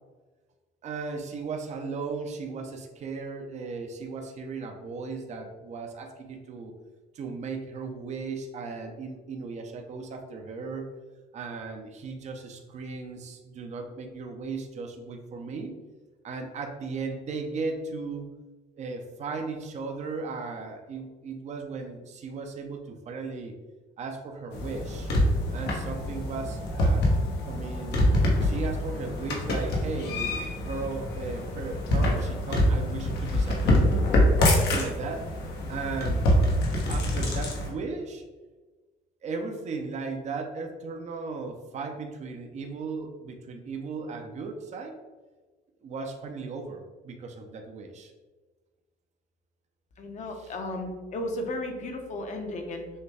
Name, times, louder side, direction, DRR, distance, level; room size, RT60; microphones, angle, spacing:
voice 1, 0.8-6.7 7.1-10.9 11.3-15.7 16.2-18.3 18.8-23.5 24.0-25.1 25.5-27.1 27.5-28.0 28.4-33.9 34.4-35.3 35.7-36.2 36.9-38.2 39.2-45.0 45.8-48.1 50.4-50.5, right 4 dB, 45° right, 3 dB, 0.6 m, -36 dB
sound 1, 24.5-37.7, left 1 dB, 80° left, 1.1 m, -25 dB
voice 2, 50.0-52.9, left 1 dB, 45° left, 3 dB, 0.8 m, -34 dB
6.3 x 2.3 x 3.4 m, 1.3 s
cardioid pair, 110°, 17 cm